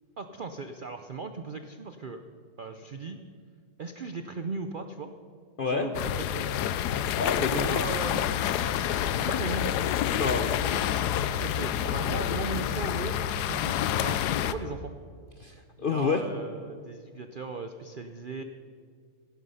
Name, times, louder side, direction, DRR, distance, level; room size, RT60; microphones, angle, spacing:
voice 1, 0.2-2.2 2.6-3.2 3.8-5.1 5.6-8.3 9.1-9.9 11.4-14.9 15.8-18.4, right 4 dB, 65° right, 8 dB, 0.5 m, -37 dB
sound 1, 5.9-14.5, left 10 dB, 85° left, 1.2 m, -28 dB
voice 2, 7.1-7.8 10.1-10.8 15.4-16.2, left 5 dB, 60° left, 6 dB, 0.6 m, -29 dB
16.0 x 11.0 x 5.6 m, 2.1 s
omnidirectional pair, 1.7 m